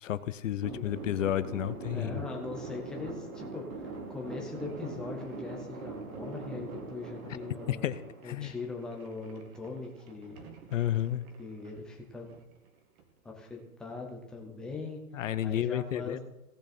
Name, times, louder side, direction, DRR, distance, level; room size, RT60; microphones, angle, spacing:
voice 1, 0.0-2.1 7.7-8.5 10.7-11.2 15.1-16.2, left 11 dB, 55° left, 14 dB, 0.7 m, -31 dB
sound 1, 0.6-8.9, right 3 dB, 65° right, 3.1 m, -42 dB
voice 2, 0.7-1.1 1.9-3.7 4.1-10.4 11.4-12.3 13.2-15.0 15.4-16.2, left 3 dB, ahead, 0 dB, 0.5 m, -41 dB
sound 2, 4.5-13.7, right 5 dB, 30° right, 1.3 m, -58 dB
17.5 x 6.2 x 4.2 m, 0.91 s
hypercardioid pair, 150°, 45 cm